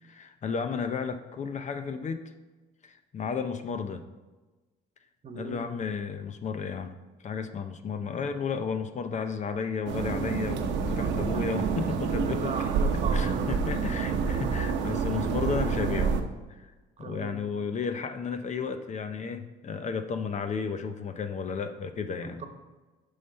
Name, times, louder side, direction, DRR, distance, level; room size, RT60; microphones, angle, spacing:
voice 1, 0.0-2.2 2.8-4.0 5.3-7.0 7.2-12.6 12.9-16.2 16.5-16.7 17.0-22.4, left 6 dB, 40° left, 8 dB, 0.6 m, -33 dB
voice 2, 5.2-5.6 11.0-11.1 12.2-13.6 17.0-17.4 22.2-22.5, right 5 dB, 40° right, 6 dB, 1.2 m, -37 dB
sound 1, 9.9-16.2, right 6 dB, 75° right, 0.9 m, -28 dB
6.5 x 5.6 x 5.4 m, 1.2 s
cardioid pair, 95°, 19 cm